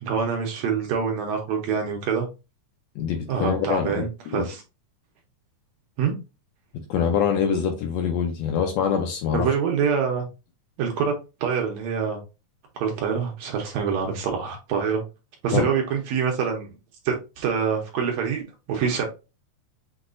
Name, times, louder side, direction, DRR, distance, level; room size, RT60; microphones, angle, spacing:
voice 1, 0.0-2.3 3.3-4.6 6.0-6.2 9.3-10.3 10.8-11.1 11.4-12.2 12.8-15.0 15.4-16.7 17.1-19.0, right 6 dB, 70° right, 1.8 m, -25 dB
voice 2, 3.0-4.5 6.9-9.5 15.5-15.7, left 7 dB, 75° left, 1.7 m, -24 dB
6.1 x 2.9 x 2.6 m
omnidirectional pair, 3.6 m